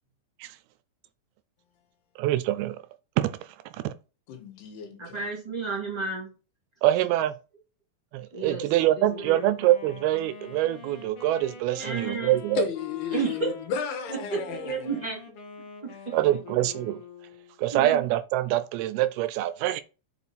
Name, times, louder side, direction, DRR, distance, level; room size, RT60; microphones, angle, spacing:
voice 1, 2.2-2.8 3.2-3.4 6.8-7.3 8.1-12.6 16.1-17.0 17.6-19.8, right 14 dB, 85° right, 2.4 m, -25 dB
voice 2, 4.3-5.2 12.5-14.8, left 6 dB, 80° left, 3.2 m, -33 dB
voice 3, 5.0-6.3 8.3-9.4 11.8-12.4 13.1-13.5 14.1-15.3 15.8-16.2 17.7-18.1, right 4 dB, 15° right, 2.0 m, -32 dB
Wind instrument woodwind instrument, 9.0-17.7, left 5 dB, 60° left, 1.6 m, -44 dB
6.9 x 4.7 x 4.1 m
omnidirectional pair, 4.5 m